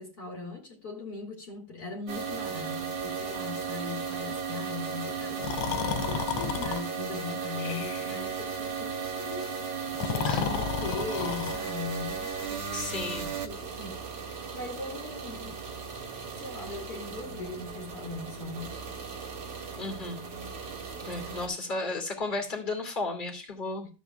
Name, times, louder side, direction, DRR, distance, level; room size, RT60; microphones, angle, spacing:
voice 1, 0.0-5.4 6.1-9.6 10.0-12.6 12.9-14.0 14.5-15.5 16.4-18.8 21.2-21.4 23.8-23.9, left 4 dB, 50° left, 2.3 m, -40 dB
sound 1, 2.1-21.5, right 5 dB, 75° right, 2.7 m, -36 dB
Breathing, 5.4-6.8 7.6-8.2 9.9-11.6, left 8 dB, 85° left, 1.6 m, -32 dB
voice 2, 10.2-10.5 12.7-13.3 19.8-20.2 21.0-23.9, left 2 dB, 25° left, 2.6 m, -34 dB
13.5 x 7.9 x 2.3 m
omnidirectional pair, 2.2 m